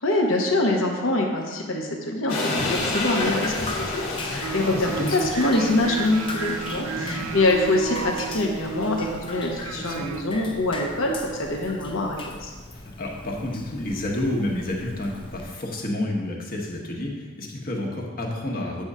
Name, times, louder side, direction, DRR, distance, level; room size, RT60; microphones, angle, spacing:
voice 1, 0.0-12.5, left 2 dB, 65° left, 0 dB, 0.9 m, -24 dB
sound 1, 2.3-9.4, left 2 dB, 85° left, 2.0 m, -32 dB
Drip, 2.6-15.4, left 2 dB, 25° left, 0.6 m, -38 dB
sound 2, 4.4-10.2, right 6 dB, 85° right, 0.4 m, -33 dB
voice 2, 4.7-5.2 6.9-7.3 9.7-10.1 12.7-18.9, left 1 dB, 45° left, -1 dB, 1.2 m, -30 dB
8.8 x 3.6 x 5.4 m, 1.3 s
head